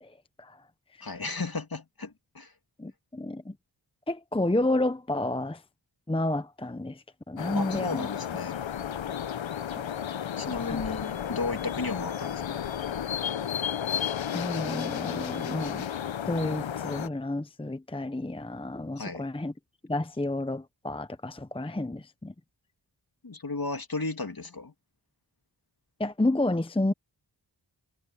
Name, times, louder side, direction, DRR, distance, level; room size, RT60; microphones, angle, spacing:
voice 1, 0.0-0.6 1.0-1.1 2.8-3.5 4.1-5.6 6.1-8.1 9.8-9.9 10.6-10.8 14.3-15.9 16.2-19.5 19.9-22.3 26.0-26.9, left 2 dB, 10° left, 0.8 m, -30 dB
voice 2, 1.0-2.5 7.5-8.6 10.4-12.6 19.0-19.2 23.2-24.7, left 3 dB, 50° left, 2.8 m, -34 dB
sound 1, 7.4-17.1, left 9 dB, 85° left, 0.8 m, -33 dB
wide cardioid pair, 55°, 45 cm